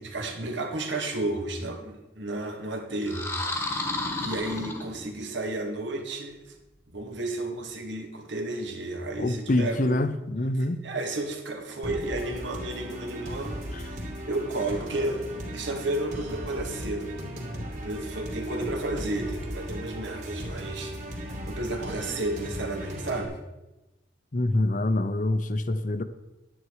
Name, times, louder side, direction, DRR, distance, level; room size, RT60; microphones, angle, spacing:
voice 1, 0.0-3.9 4.2-6.5 6.9-10.0 10.6-14.0 14.3-15.2 15.5-17.1 17.7-23.4, right 2 dB, 75° right, 1.9 m, -32 dB
sound 1, 3.0-5.3, left 2 dB, 10° left, 1.2 m, -32 dB
voice 2, 9.2-10.8 13.7-13.8 24.3-26.0, left 1 dB, 45° left, 0.6 m, -26 dB
sound 2, 11.8-23.2, equal, 40° right, 2.2 m, -37 dB
10.5 x 9.6 x 4.8 m
head